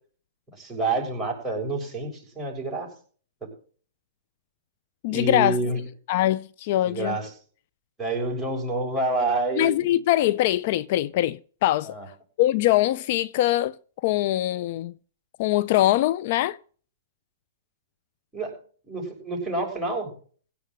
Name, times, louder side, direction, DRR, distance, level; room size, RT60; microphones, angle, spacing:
voice 1, 0.5-2.9 3.4-3.5 5.1-5.8 6.8-7.3 8.0-9.7 11.9-12.1 18.3-18.6 18.9-20.1, right 2 dB, 5° right, 7.1 m, -28 dB
voice 2, 5.0-5.6 6.1-7.2 9.5-11.9 12.4-13.8 14.0-14.9 15.4-16.6, left 14 dB, 50° left, 0.5 m, -22 dB
16.5 x 6.2 x 7.9 m
hypercardioid pair, 125°, 0 cm